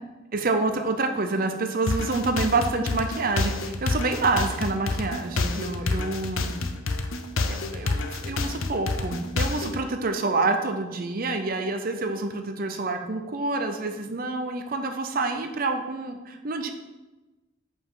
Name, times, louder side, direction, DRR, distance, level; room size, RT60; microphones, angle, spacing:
voice 1, 0.3-6.6 7.5-16.7, right 3 dB, 45° right, 6 dB, 0.6 m, -27 dB
sound 1, 1.9-9.8, left 3 dB, 85° left, 0.6 m, -28 dB
5.4 x 5.2 x 4.8 m, 1.1 s
head